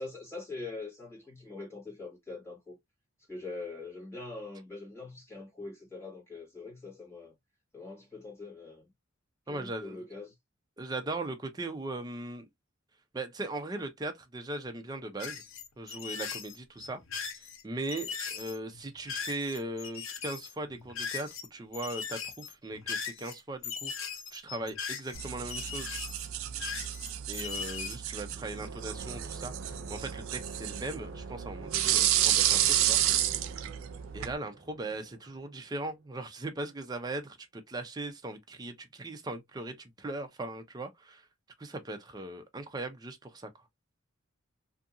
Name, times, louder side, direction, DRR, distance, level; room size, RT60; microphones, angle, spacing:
voice 1, 0.0-2.8 3.3-7.3 7.7-8.9 9.5-10.3, left 3 dB, 15° left, 1.6 m, -43 dB
voice 2, 9.5-10.0 10.8-12.5 13.1-15.4 15.8-17.0 17.4-25.9 27.3-33.0 34.1-41.3 41.6-43.5, right 2 dB, 20° right, 0.4 m, -39 dB
sound 1, 15.2-21.5 21.7-27.9, left 6 dB, 75° left, 0.6 m, -39 dB
sound 2, 25.1-34.4, right 12 dB, 85° right, 0.4 m, -31 dB
sound 3, 28.3-36.0, right 3 dB, 65° right, 0.7 m, -46 dB
2.7 x 2.5 x 2.4 m
head